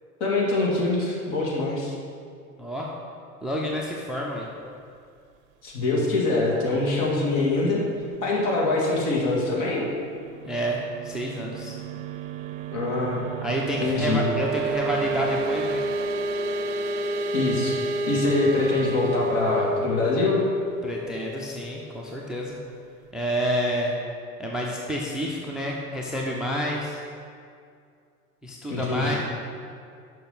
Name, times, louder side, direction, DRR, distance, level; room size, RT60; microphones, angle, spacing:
voice 1, 0.2-1.9 5.6-7.8 8.2-9.8 12.7-13.3 13.8-14.2 17.3-17.8 18.1-20.4 28.7-29.2, left 2 dB, 55° left, -3 dB, 2.1 m, -24 dB
voice 2, 2.6-2.9 3.4-4.5 10.4-11.7 13.4-15.9 20.8-22.6 23.1-24.0 24.4-27.0 28.4-29.2, equal, ahead, -2 dB, 0.5 m, -29 dB
sound 1, 10.1-22.7, right 2 dB, 50° right, 0.6 m, -30 dB
6.6 x 5.5 x 5.7 m, 2.4 s
figure-of-eight pair, 80°, 45 cm